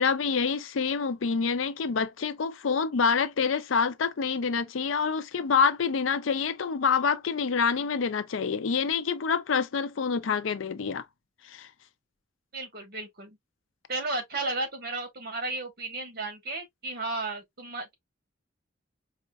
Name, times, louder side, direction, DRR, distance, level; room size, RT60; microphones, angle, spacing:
voice 1, 0.0-11.0 11.5-11.7, left 5 dB, 85° left, 0.5 m, -27 dB
voice 2, 12.5-13.4 13.9-17.9, right 2 dB, 50° right, 1.3 m, -34 dB
4.9 x 2.4 x 2.3 m
head